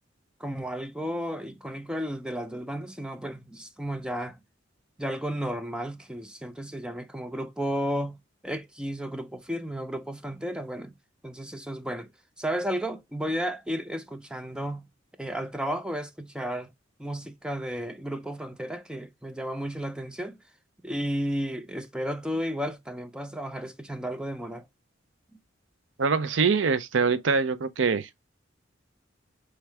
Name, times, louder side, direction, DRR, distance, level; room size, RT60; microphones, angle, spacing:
voice 1, 0.4-4.4 5.0-8.2 8.4-10.9 11.2-12.1 12.4-14.9 15.2-16.7 17.0-20.4 20.8-24.7, equal, 5° right, 0.5 m, -33 dB
voice 2, 26.0-28.3, right 5 dB, 80° right, 0.6 m, -24 dB
4.7 x 3.3 x 3.4 m
head